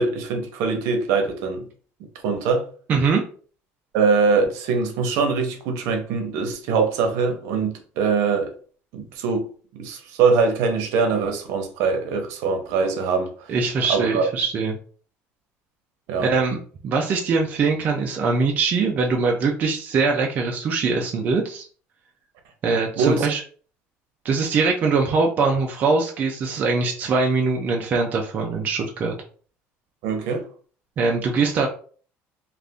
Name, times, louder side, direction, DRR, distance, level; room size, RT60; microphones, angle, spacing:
voice 1, 0.0-1.7 2.2-2.7 3.9-8.5 8.9-13.5 13.9-14.3 16.1-16.3 23.0-23.3 30.0-30.4, right 4 dB, 75° right, 0.8 m, -22 dB
voice 2, 2.9-3.2 13.5-14.8 16.2-16.6 16.8-21.7 22.6-23.4 24.2-29.1 31.0-31.7, right 4 dB, 35° right, 0.4 m, -22 dB
2.5 x 2.4 x 3.4 m
cardioid pair, 155°, 5 cm